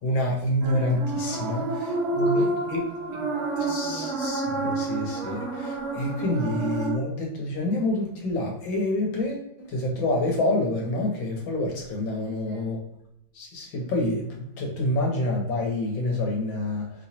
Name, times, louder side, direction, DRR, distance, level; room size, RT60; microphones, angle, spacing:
voice 1, 0.0-1.6 2.2-2.8 3.7-12.8 13.4-16.9, left 1 dB, 70° left, 0 dB, 1.9 m, -27 dB
sound 1, 0.6-6.9, right 2 dB, 40° right, 1.0 m, -29 dB
voice 2, 1.5-2.7 3.1-4.2 12.3-12.7, right 3 dB, 80° right, -1 dB, 1.6 m, -44 dB
5.6 x 3.2 x 2.8 m, 0.76 s
omnidirectional pair, 2.2 m